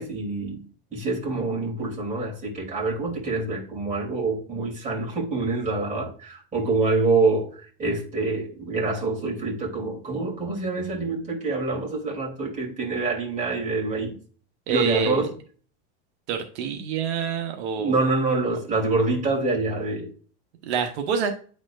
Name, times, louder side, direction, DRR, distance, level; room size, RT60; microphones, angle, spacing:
voice 1, 0.0-14.2 14.7-15.3 17.8-20.1, right 3 dB, 25° right, 3.0 m, -26 dB
voice 2, 14.7-15.3 16.3-18.0 20.7-21.3, right 7 dB, 80° right, 1.0 m, -26 dB
9.5 x 4.2 x 2.5 m
supercardioid pair, 125°, 33 cm